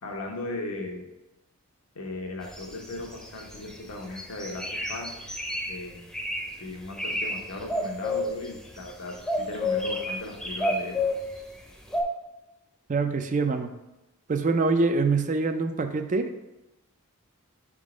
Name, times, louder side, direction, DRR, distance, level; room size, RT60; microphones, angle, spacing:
voice 1, 0.0-1.0 1.9-5.2 5.7-6.1 6.6-11.0, left 2 dB, 80° left, 1 dB, 1.1 m, -37 dB
sound 1, 2.5-3.7 4.1-5.7 6.1-6.5 6.9-7.3 7.6-8.9 9.3-11.3 11.9-12.0, left 2 dB, ahead, 0.6 m, -29 dB
voice 2, 12.9-13.7 14.3-16.4, right 3 dB, 35° right, 7 dB, 0.4 m, -25 dB
5.1 x 3.7 x 4.9 m, 0.98 s
head